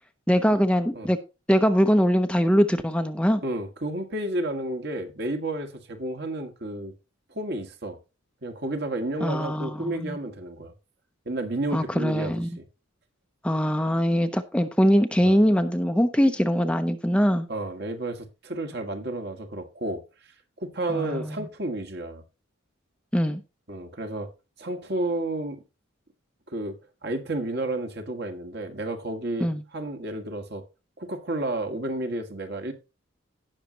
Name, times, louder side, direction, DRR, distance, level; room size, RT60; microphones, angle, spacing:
voice 1, 0.3-1.2 1.5-3.4 9.2-10.2 11.7-12.5 13.4-17.5 20.9-21.5 23.1-23.4 29.4-29.6, equal, 5° left, 0.6 m, -22 dB
voice 2, 3.4-6.9 7.3-8.0 8.4-10.7 11.3-12.7 15.2-15.4 17.5-20.0 20.6-22.2 23.7-24.3 24.6-25.6 26.5-26.8 27.0-30.6 31.0-32.7, right 1 dB, 55° right, 1.8 m, -31 dB
17.5 x 6.4 x 2.8 m
head